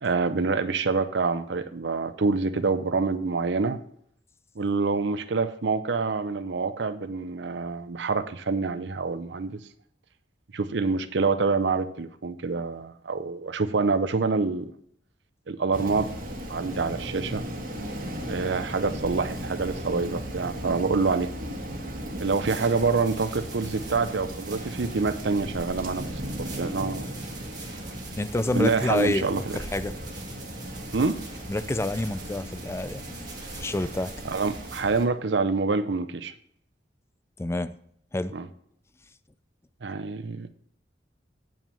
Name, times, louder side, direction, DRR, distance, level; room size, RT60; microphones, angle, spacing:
voice 1, 0.0-3.8 4.6-9.6 10.5-14.7 15.5-16.1 16.5-17.4 18.3-21.3 22.2-27.1 28.5-29.6 30.9-31.2 34.2-36.3 38.3-38.5 39.8-40.5, right 4 dB, 70° right, 11 dB, 0.6 m, -26 dB
Rain, 15.7-35.0, equal, 50° right, 1.5 m, -37 dB
sound 1, 22.1-34.8, right 4 dB, 20° right, 1.8 m, -46 dB
voice 2, 28.2-29.9 31.5-34.1 37.4-37.7 38.1-38.3, left 2 dB, 15° left, 13 dB, 0.4 m, -28 dB
8.9 x 5.9 x 5.5 m, 0.66 s
head